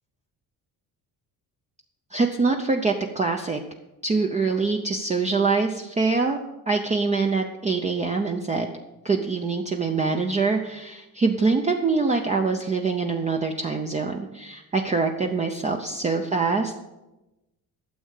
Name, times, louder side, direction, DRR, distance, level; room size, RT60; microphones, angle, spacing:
voice 1, 2.1-3.6 4.0-6.4 6.7-8.7 9.0-16.8, right 4 dB, 20° right, 3 dB, 0.6 m, -24 dB
12.5 x 7.7 x 6.5 m, 1.0 s
cardioid pair, 165°, 37 cm